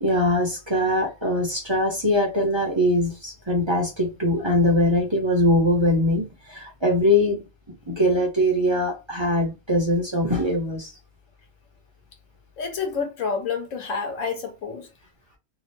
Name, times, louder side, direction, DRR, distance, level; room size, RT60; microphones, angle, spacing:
voice 1, 0.0-7.5 7.9-10.9, left 1 dB, 25° right, 0.7 m, -22 dB
voice 2, 12.6-14.9, left 5 dB, 85° left, 1.2 m, -29 dB
2.8 x 2.0 x 3.1 m
omnidirectional pair, 1.3 m